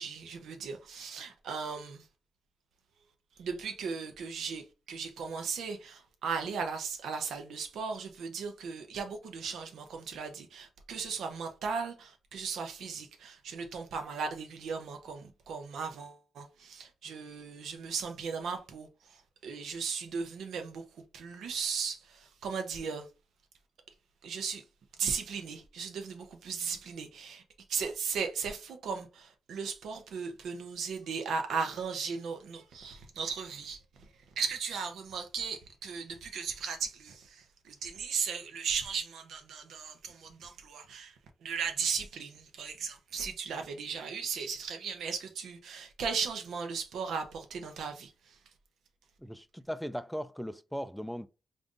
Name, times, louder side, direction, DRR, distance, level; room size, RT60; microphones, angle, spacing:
voice 1, 0.0-2.1 3.4-20.8 21.1-23.1 24.2-24.6 25.0-27.4 27.7-48.4, right 5 dB, 85° right, 0.7 m, -37 dB
voice 2, 49.2-51.3, equal, ahead, 0.3 m, -38 dB
5.2 x 2.6 x 2.4 m
cardioid pair, 115°, 0 cm